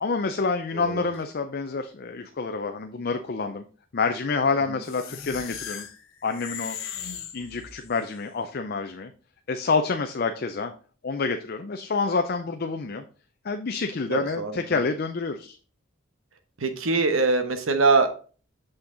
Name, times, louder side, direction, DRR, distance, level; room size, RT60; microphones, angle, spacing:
voice 1, 0.0-3.6 3.9-5.9 6.2-6.8 7.3-9.1 9.5-10.7 11.0-13.0 13.4-15.6, left 4 dB, 45° left, 6 dB, 0.5 m, -28 dB
voice 2, 0.7-1.1 4.7-4.8 14.1-14.8 16.6-18.1, right 3 dB, 80° right, 8 dB, 1.1 m, -23 dB
sound 1, 4.8-8.1, left 8 dB, 80° left, 1.1 m, -38 dB
6.5 x 5.8 x 3.9 m, 0.39 s
head